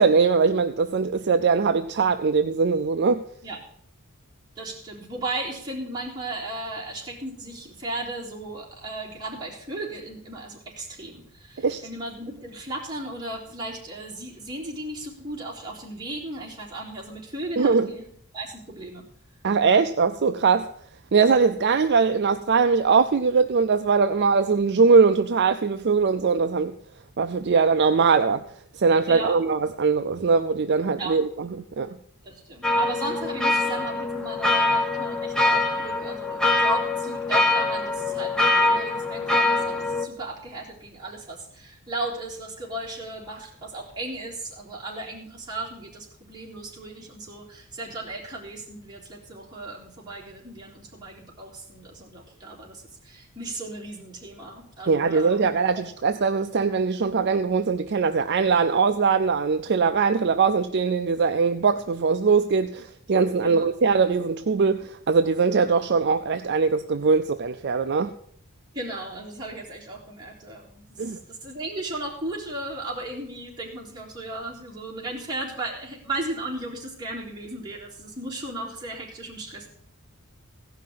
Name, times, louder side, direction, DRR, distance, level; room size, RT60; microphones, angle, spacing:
voice 1, 0.0-3.2 11.6-11.8 17.6-17.9 19.4-20.7 21.1-26.7 27.2-28.4 28.7-31.5 31.8-31.9 54.9-68.1 71.0-71.2, right 5 dB, 50° right, 9 dB, 0.5 m, -21 dB
voice 2, 4.6-18.1 18.3-19.0 29.1-29.4 31.0-31.2 32.2-55.4 63.4-63.7 68.7-79.7, right 2 dB, 20° right, -5 dB, 3.6 m, -35 dB
sound 1, 32.6-40.1, left 2 dB, 5° left, 1.0 m, -23 dB
16.0 x 5.8 x 7.4 m, 0.65 s
head